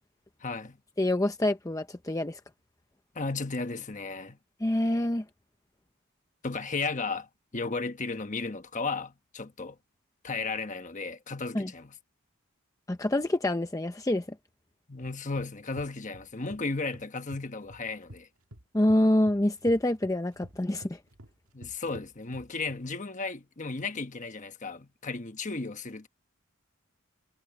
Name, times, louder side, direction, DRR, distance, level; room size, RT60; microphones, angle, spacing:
voice 1, 0.4-0.8 3.1-4.4 6.4-9.8 10.2-11.9 14.9-18.3 21.5-26.1, left 3 dB, 35° left, 1.2 m, -34 dB
voice 2, 1.0-2.4 4.6-5.2 11.5-11.7 12.9-14.3 18.7-21.0, left 1 dB, 15° left, 0.7 m, -26 dB
sound 1, 15.0-16.6 16.9-18.2 18.5-22.8, equal, 85° right, 2.0 m, -49 dB
head